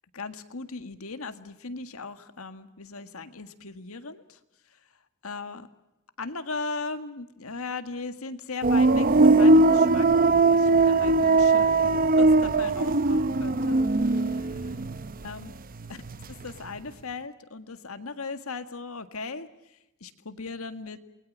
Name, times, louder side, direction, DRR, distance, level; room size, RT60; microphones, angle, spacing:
voice 1, 0.1-4.4 5.2-5.7 6.2-13.8 14.1-14.7 15.2-15.5 16.3-19.5 20.0-21.0, left 3 dB, 75° left, 9 dB, 1.8 m, -38 dB
sound 1, 8.6-15.5 15.8-16.5, right 3 dB, 40° right, 0.8 m, -20 dB
28.5 x 21.0 x 7.4 m, 0.95 s
head